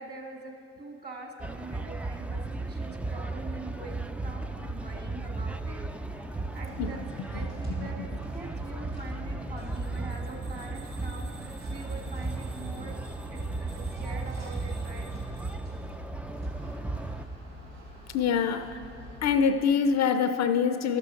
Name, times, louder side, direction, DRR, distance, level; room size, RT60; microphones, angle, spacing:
voice 1, 0.0-5.8 6.5-15.5, right 3 dB, 30° right, 1 dB, 1.9 m, -44 dB
sound 1, 1.4-17.2, right 2 dB, 5° right, 0.3 m, -35 dB
sound 2, 6.1-19.6, equal, 85° right, 2.1 m, -46 dB
voice 2, 18.1-18.8 19.2-21.0, left 6 dB, 50° left, 10 dB, 0.5 m, -25 dB
12.0 x 6.7 x 5.0 m, 2.5 s
hypercardioid pair, 55°, 34 cm